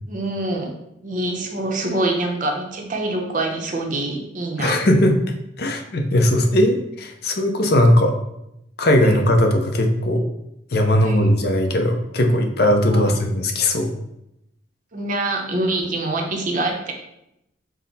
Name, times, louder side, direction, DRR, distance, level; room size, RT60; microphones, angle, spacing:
voice 1, 0.1-0.7 1.0-4.8 9.0-9.2 11.0-11.3 12.9-13.1 14.9-16.9, right 2 dB, 45° right, 2 dB, 0.7 m, -25 dB
voice 2, 4.6-5.1 5.6-8.1 8.8-10.2 10.7-13.9, left 1 dB, 55° left, 4 dB, 0.6 m, -18 dB
6.0 x 2.1 x 4.0 m, 0.82 s
head